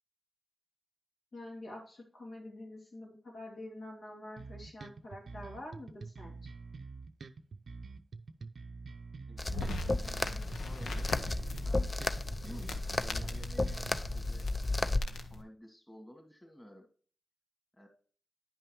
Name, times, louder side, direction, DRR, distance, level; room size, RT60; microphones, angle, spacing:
voice 1, 1.3-6.4, left 1 dB, 75° left, -3 dB, 2.6 m, -47 dB
sound 1, 4.4-14.0, right 4 dB, 70° right, 0.5 m, -47 dB
voice 2, 9.3-11.4 11.6-11.9 12.4-16.9 17.7-17.9, equal, 15° left, 3 dB, 2.5 m, -53 dB
sound 2, 9.4-15.4, left 2 dB, 90° left, 0.8 m, -42 dB
sound 3, 9.4-15.0, left 2 dB, 30° left, 0.5 m, -34 dB
10.0 x 5.5 x 3.0 m, 0.42 s
supercardioid pair, 40°, 0 cm